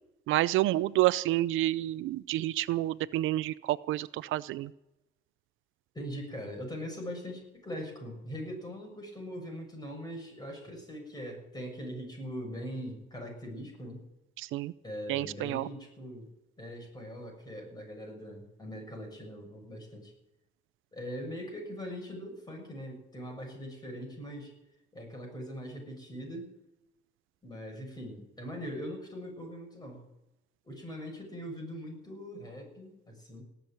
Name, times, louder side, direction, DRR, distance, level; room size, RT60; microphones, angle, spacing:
voice 1, 0.3-4.7 14.4-14.7 15.1-15.7, right 15 dB, 85° right, 18 dB, 0.5 m, -29 dB
voice 2, 5.9-14.0 14.8-16.3 16.6-20.1 20.9-24.5 24.9-26.5 27.4-30.0 30.6-33.4, equal, 20° left, 1 dB, 7.2 m, -41 dB
18.5 x 7.4 x 9.0 m, 0.92 s
cardioid pair, 90°, 20 cm